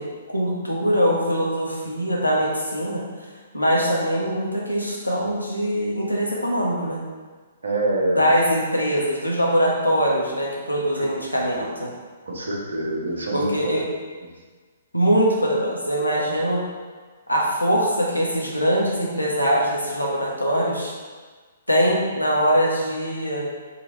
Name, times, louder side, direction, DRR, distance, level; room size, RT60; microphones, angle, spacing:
voice 1, 0.0-3.0 3.5-7.0 8.2-11.9 13.3-13.8 14.9-16.6 17.3-20.9 21.7-23.5, equal, 90° left, -3 dB, 0.9 m, -22 dB
voice 2, 7.6-8.2 11.0-11.1 11.5-11.7 12.3-13.9 16.1-16.6, right 1 dB, 70° right, -2 dB, 1.0 m, -26 dB
4.3 x 3.0 x 3.9 m, 1.4 s
figure-of-eight pair, 120°, 0 cm